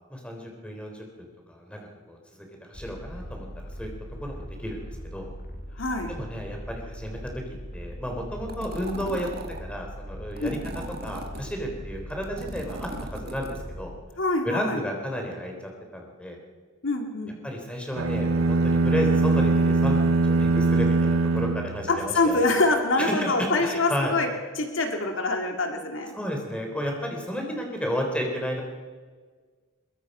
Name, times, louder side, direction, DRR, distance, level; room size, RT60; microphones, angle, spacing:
voice 1, 0.1-1.8 2.1-3.5 3.8-3.9 4.2-4.8 5.1-5.3 6.1-7.2 7.7-9.3 9.6-10.6 11.0-13.9 14.4-16.4 17.4-22.4 23.0-24.1 26.1-28.6, equal, 5° left, 1 dB, 3.5 m, -32 dB
sound 1, 2.7-14.0, equal, 50° left, 2.4 m, -40 dB
voice 2, 5.8-6.1 10.4-10.8 14.2-14.8 16.8-17.3 21.9-24.3 24.6-26.1, left 2 dB, 65° left, 4 dB, 2.1 m, -25 dB
sound 2, 8.5-9.6 10.4-11.5 12.1-13.6, right 2 dB, 50° right, 1.8 m, -39 dB
sound 3, 18.0-22.3, right 3 dB, 75° right, 0.7 m, -22 dB
22.0 x 21.5 x 5.5 m, 1.5 s
head